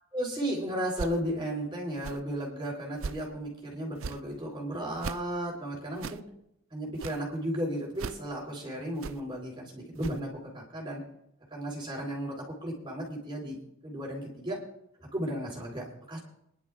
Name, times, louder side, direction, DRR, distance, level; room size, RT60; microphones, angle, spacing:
voice 1, 0.1-6.2 6.7-11.0 11.5-13.6 13.8-14.6 15.0-16.2, right 1 dB, 25° right, -2 dB, 3.7 m, -34 dB
sound 1, 0.9-1.2 1.9-2.2 2.9-3.3 3.9-4.2 4.9-5.2 5.9-6.2 6.9-7.2 7.9-8.2 9.0-9.2 9.9-10.2, right 5 dB, 75° right, 0.5 m, -38 dB
26.5 x 11.0 x 2.4 m, 0.78 s
head